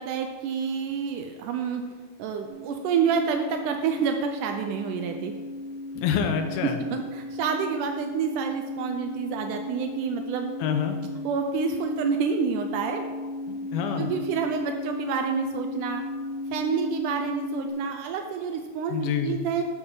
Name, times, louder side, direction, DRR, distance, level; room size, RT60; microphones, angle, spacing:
voice 1, 0.0-1.8 2.2-5.4 6.9-10.5 11.2-13.0 14.0-16.1 16.5-19.6, right 6 dB, 85° right, 5 dB, 1.8 m, -28 dB
sound 1, 2.5-17.7, left 2 dB, 50° left, 1.6 m, -35 dB
voice 2, 5.9-6.8 10.6-11.0 13.5-14.1 18.9-19.4, left 7 dB, 80° left, 6 dB, 2.8 m, -27 dB
11.5 x 7.9 x 3.9 m, 1.4 s
omnidirectional pair, 4.4 m